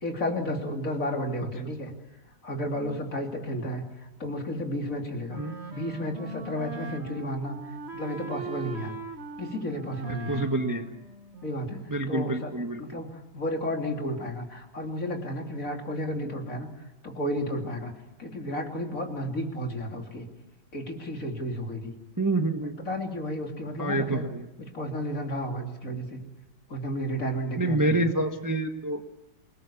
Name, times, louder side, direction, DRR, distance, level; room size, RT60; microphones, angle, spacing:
voice 1, 0.0-1.9 2.4-5.4 5.7-7.6 7.9-8.9 9.4-10.4 11.4-12.5 12.8-16.7 17.0-17.9 18.2-20.3 20.7-21.9 22.6-24.3 24.6-26.2 26.7-28.1, equal, 45° left, 2 dB, 3.6 m, -32 dB
Wind instrument woodwind instrument, 5.3-11.9, right 3 dB, 35° right, 2.0 m, -40 dB
voice 2, 10.3-10.9 11.9-12.8 16.2-16.3 22.2-22.8 23.8-24.5 27.6-29.0, right 2 dB, 10° right, 5 dB, 1.2 m, -27 dB
27.5 x 19.5 x 7.2 m, 1.0 s
omnidirectional pair, 1.9 m